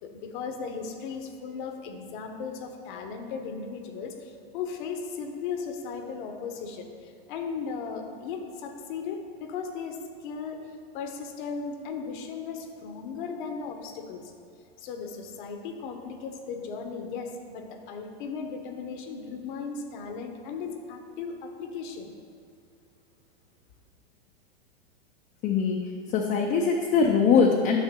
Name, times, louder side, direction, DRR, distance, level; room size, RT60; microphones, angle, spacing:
voice 1, 0.0-10.6 10.9-14.3 14.8-22.1, left 5 dB, 55° left, 5 dB, 1.0 m, -36 dB
voice 2, 25.4-25.8 26.1-27.8, left 5 dB, 30° left, 0 dB, 0.6 m, -22 dB
9.5 x 6.2 x 3.7 m, 2.4 s
hypercardioid pair, 135°, 30 cm